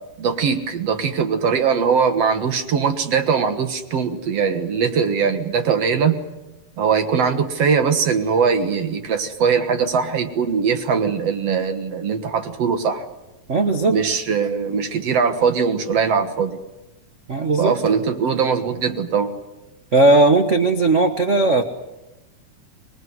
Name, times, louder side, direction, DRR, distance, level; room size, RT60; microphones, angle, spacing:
voice 1, 0.2-6.2 6.8-13.1 13.9-16.6 17.6-19.3, right 6 dB, 55° right, 8 dB, 2.3 m, -21 dB
voice 2, 13.5-14.0 17.3-17.7 19.9-21.6, right 2 dB, 80° right, 6 dB, 0.6 m, -16 dB
25.5 x 20.5 x 9.5 m, 1.0 s
omnidirectional pair, 3.6 m